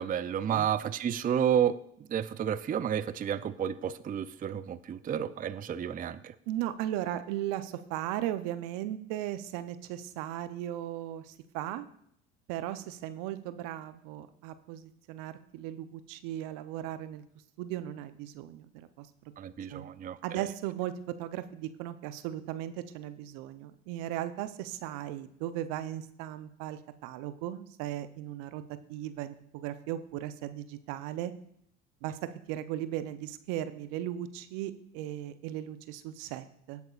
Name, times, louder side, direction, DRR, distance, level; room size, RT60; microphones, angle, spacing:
voice 1, 0.0-6.3 19.4-20.4, right 9 dB, 25° right, 14 dB, 0.4 m, -31 dB
voice 2, 6.5-11.9 12.5-17.2 17.6-19.1 19.7-19.9 20.2-28.6 28.9-31.3 32.0-32.2 32.5-36.8, right 12 dB, 70° right, 12 dB, 0.8 m, -37 dB
16.5 x 8.2 x 2.4 m, 0.70 s
hypercardioid pair, 65°, 34 cm